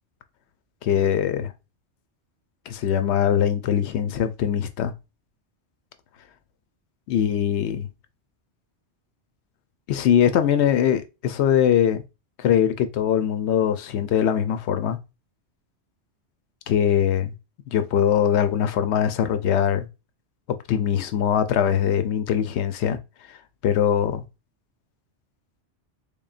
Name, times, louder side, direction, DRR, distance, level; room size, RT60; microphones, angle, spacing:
voice 1, 0.8-1.5 2.7-4.9 7.1-7.9 9.9-12.0 12.4-15.0 16.7-17.3 17.7-19.9 20.7-23.0 23.3-23.4 23.6-24.2, left 9 dB, 75° left, 0.8 m, -22 dB
3.7 x 3.6 x 2.4 m
omnidirectional pair, 1.2 m